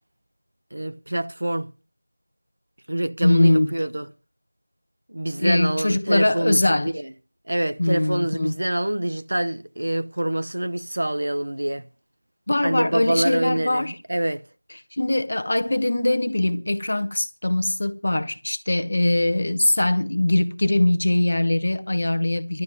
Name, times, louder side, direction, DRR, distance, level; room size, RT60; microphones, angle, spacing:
voice 1, 0.7-1.7 2.9-4.1 5.1-7.1 7.5-11.8 12.6-14.4, right 1 dB, 50° right, 0.9 m, -26 dB
voice 2, 3.2-3.7 5.4-6.9 7.8-8.5 12.5-14.0 15.0-22.6, left 1 dB, 35° left, 1.2 m, -21 dB
12.0 x 8.2 x 9.9 m
figure-of-eight pair, 180°, 0 cm